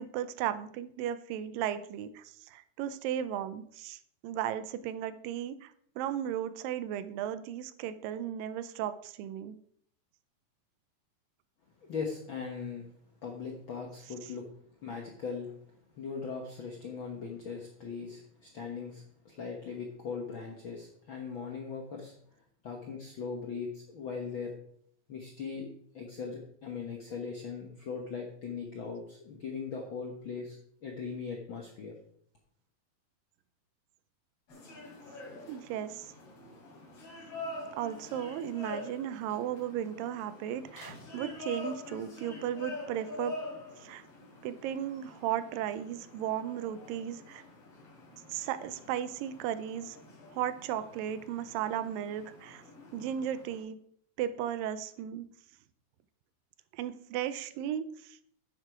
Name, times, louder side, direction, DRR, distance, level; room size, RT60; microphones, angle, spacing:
voice 1, 0.0-5.7 6.0-9.6 35.5-36.1 37.8-43.4 43.8-44.0 44.4-47.4 48.3-50.0 50.3-52.6 52.9-53.8 54.2-55.3 56.7-58.2, right 10 dB, 90° right, 13 dB, 2.3 m, -35 dB
voice 2, 11.8-12.9 13.2-14.5 14.8-15.6 15.9-22.1 22.6-24.5 25.1-25.7 25.9-31.9, left 5 dB, 70° left, 1 dB, 1.2 m, -39 dB
sound 1, 34.5-53.6, left 2 dB, 45° left, 3.4 m, -46 dB
9.7 x 7.4 x 4.8 m, 0.64 s
omnidirectional pair, 4.0 m